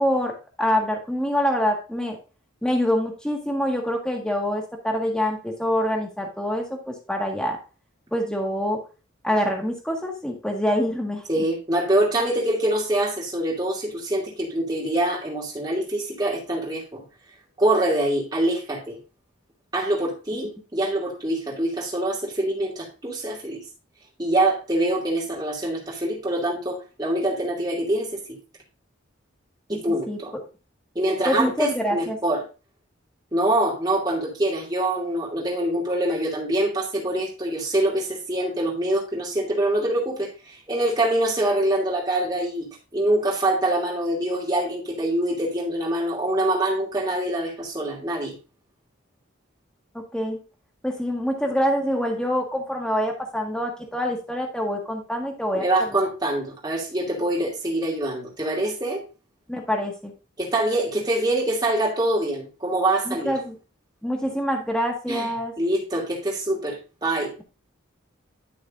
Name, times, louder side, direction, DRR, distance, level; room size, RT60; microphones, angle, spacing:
voice 1, 0.0-2.2 2.6-7.6 8.1-8.8 9.2-11.2 29.7-29.8 30.1-30.2 31.2-32.2 49.9-50.4 50.8-55.7 59.5-60.1 63.1-63.5 64.0-65.5, equal, 5° left, 1 dB, 1.6 m, -25 dB
voice 2, 11.3-17.0 17.6-19.0 19.7-23.6 24.2-28.1 29.7-30.3 30.9-32.4 33.3-48.3 55.5-59.0 60.4-63.3 65.1-65.3 65.6-67.3, right 1 dB, 20° right, -3 dB, 2.7 m, -25 dB
11.0 x 6.4 x 2.6 m, 0.32 s
head